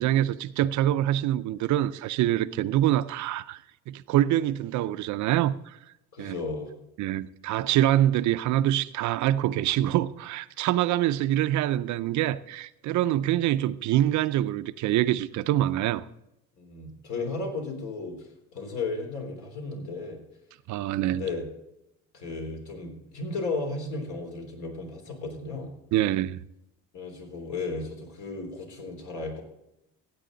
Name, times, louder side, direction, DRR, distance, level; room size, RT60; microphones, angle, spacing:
voice 1, 0.0-3.6 3.9-5.8 6.2-6.4 7.0-16.0 20.7-21.2 25.9-26.4, right 13 dB, 65° right, 0.6 m, -25 dB
voice 2, 6.1-6.7 16.6-20.2 21.1-21.5 22.1-25.7 26.9-29.4, left 3 dB, 60° left, 3.6 m, -34 dB
15.0 x 8.5 x 3.9 m
cardioid pair, 110°, 32 cm